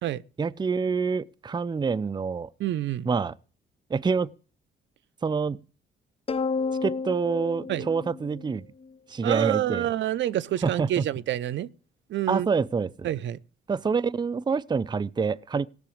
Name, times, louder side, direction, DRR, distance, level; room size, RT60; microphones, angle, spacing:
voice 1, 0.4-2.5 3.1-3.3 3.9-4.3 5.2-5.6 6.8-8.7 9.1-9.9 10.6-11.0 12.3-13.1 13.7-15.7, right 5 dB, 20° right, 0.6 m, -27 dB
voice 2, 2.6-3.1 7.7-7.9 9.2-11.7 12.1-12.5 13.0-13.4, right 12 dB, 70° right, 0.7 m, -27 dB
sound 1, 6.3-8.9, left 4 dB, 30° left, 0.6 m, -31 dB
17.0 x 6.0 x 8.6 m
cardioid pair, 90°, 20 cm